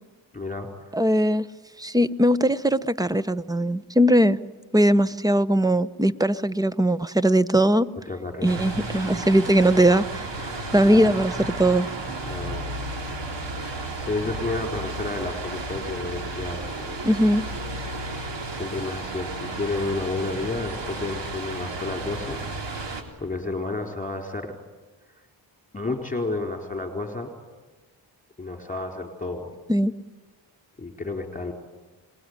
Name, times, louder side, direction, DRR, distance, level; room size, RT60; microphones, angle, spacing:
voice 1, 0.3-1.0 8.1-8.6 10.4-11.2 12.3-12.7 14.0-17.0 18.4-22.4 23.2-24.5 25.7-27.3 28.4-29.5 30.8-31.5, left 2 dB, 15° left, 3 dB, 4.5 m, -31 dB
voice 2, 0.9-1.4 1.8-4.4 4.7-7.9 8.4-10.3 10.7-11.9 17.0-17.4 29.7-29.9, right 1 dB, 10° right, 15 dB, 0.9 m, -20 dB
sound 1, 8.4-23.0, right 2 dB, 65° right, 3.9 m, -33 dB
27.0 x 21.0 x 9.7 m, 1.3 s
cardioid pair, 85°, 46 cm